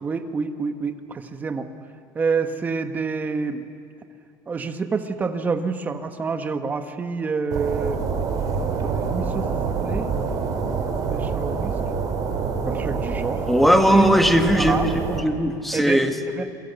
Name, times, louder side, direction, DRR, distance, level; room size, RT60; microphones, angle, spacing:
voice 1, 0.0-1.7 2.1-3.6 4.5-8.0 8.8-9.5 9.8-10.1 11.1-11.8 12.6-13.4 13.9-14.2 14.5-14.9 15.7-16.0 16.3-16.4, right 5 dB, 20° right, 7 dB, 1.3 m, -27 dB
sound 1, 7.5-15.2, right 5 dB, 45° right, 3.5 m, -26 dB
voice 2, 13.5-16.2, equal, ahead, 5 dB, 1.5 m, -19 dB
29.0 x 23.0 x 8.2 m, 2.6 s
cardioid pair, 165°, 9 cm